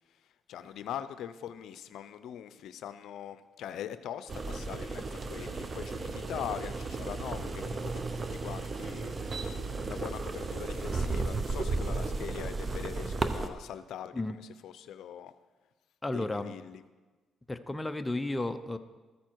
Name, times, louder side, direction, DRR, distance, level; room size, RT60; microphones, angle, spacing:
voice 1, 0.5-9.1 9.8-15.3 16.1-16.8, left 10 dB, 80° left, 12 dB, 0.5 m, -42 dB
sound 1, 4.3-13.5, right 3 dB, 35° right, 0.8 m, -34 dB
voice 2, 16.0-16.5 17.5-18.8, left 2 dB, 15° left, 9 dB, 0.6 m, -33 dB
13.5 x 9.4 x 4.6 m, 1.3 s
cardioid pair, 90°, 0 cm